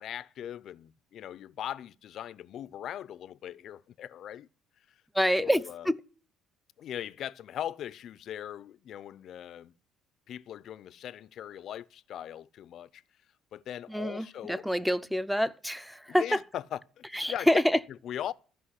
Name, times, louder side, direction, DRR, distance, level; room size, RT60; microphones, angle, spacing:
voice 1, 0.0-4.5 4.9-5.0 5.4-5.9 6.8-9.7 10.3-13.0 13.5-14.8 16.1-17.6 17.9-18.3, left 10 dB, 60° left, 0.6 m, -40 dB
voice 2, 5.1-5.9 13.9-16.4 17.1-17.8, equal, ahead, 0.7 m, -27 dB
14.5 x 5.5 x 9.8 m
cardioid pair, 115°, 0 cm